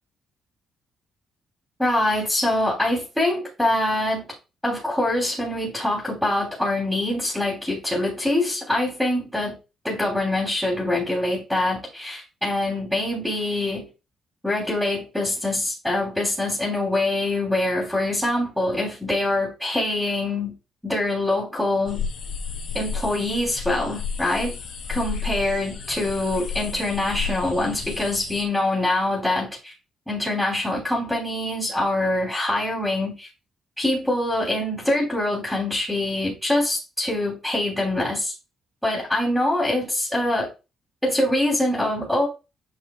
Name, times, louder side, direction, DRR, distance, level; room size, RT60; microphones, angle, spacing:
voice 1, 1.8-4.3 4.6-9.6 9.8-13.9 14.4-20.5 20.8-22.0 22.7-24.6 24.9-29.7 30.1-33.3 33.8-38.3 38.8-40.5 41.0-42.3, left 1 dB, ahead, 3.4 m, -24 dB
sound 1, 21.9-28.4, left 6 dB, 60° left, 2.5 m, -32 dB
9.3 x 5.6 x 2.4 m
cardioid pair, 90°, 0 cm